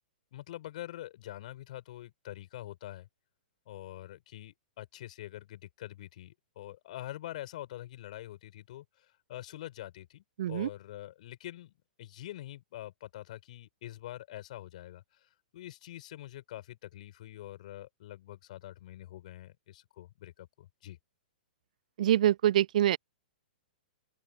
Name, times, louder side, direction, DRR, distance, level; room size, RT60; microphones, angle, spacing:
voice 1, 0.3-3.1 3.7-11.7 12.0-21.0, left 14 dB, 50° left, 5.7 m, -45 dB
voice 2, 10.4-10.7 22.0-23.0, right 12 dB, 55° right, 1.2 m, -25 dB
open air
figure-of-eight pair, 110°, 5 cm